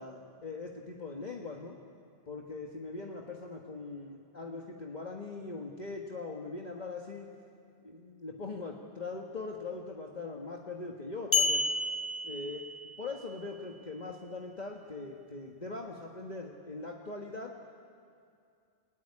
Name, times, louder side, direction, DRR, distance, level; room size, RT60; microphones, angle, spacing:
voice 1, 0.0-1.8 2.3-7.3 7.8-11.6 12.2-12.7 13.0-17.7, left 3 dB, 40° left, 0 dB, 1.6 m, -41 dB
sound 1, 11.3-13.2, left 2 dB, 15° left, 0.9 m, -30 dB
29.0 x 17.0 x 9.9 m, 2.5 s
omnidirectional pair, 1.2 m